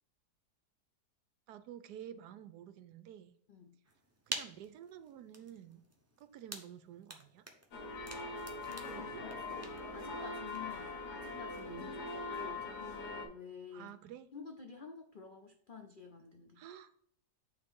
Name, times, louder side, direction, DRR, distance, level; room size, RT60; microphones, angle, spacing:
voice 1, 1.5-3.3 4.3-5.9 6.2-7.4 8.9-9.2 13.7-14.3 16.6-16.9, right 10 dB, 75° right, 12 dB, 1.1 m, -50 dB
sound 1, 3.8-10.9, right 2 dB, 20° right, 0.4 m, -49 dB
sound 2, 7.7-13.2, left 3 dB, 70° left, 1.8 m, -42 dB
voice 2, 8.6-9.6 9.9-13.9 14.3-16.6, left 5 dB, 90° left, 4 dB, 0.4 m, -50 dB
8.9 x 3.8 x 3.6 m, 0.66 s
omnidirectional pair, 1.8 m